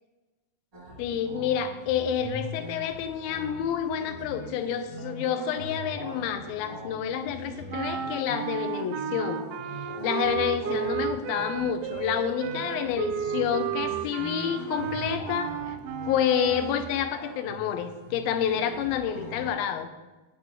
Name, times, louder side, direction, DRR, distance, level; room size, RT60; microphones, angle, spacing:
sound 1, 0.7-19.5, equal, 55° right, 0.6 m, -41 dB
voice 1, 1.0-9.4 10.0-15.8 16.1-19.9, left 9 dB, 80° left, 9 dB, 2.3 m, -29 dB
sound 2, 7.7-16.9, right 9 dB, 80° right, 2.2 m, -33 dB
10.5 x 9.2 x 3.6 m, 1.1 s
omnidirectional pair, 4.6 m